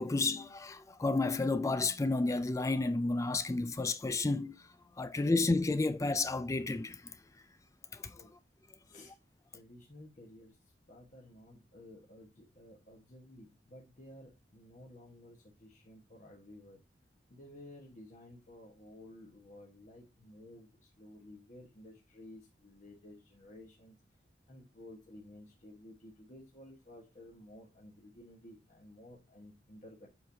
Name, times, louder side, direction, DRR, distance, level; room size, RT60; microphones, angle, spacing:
voice 1, 0.0-4.7 5.0-7.2 7.9-8.2, left 3 dB, 15° left, 0.3 m, -31 dB
voice 2, 8.9-9.2 9.5-10.6 10.9-16.8 17.3-24.0 24.5-30.1, left 1 dB, 40° left, 1.4 m, -54 dB
7.8 x 4.6 x 2.8 m
head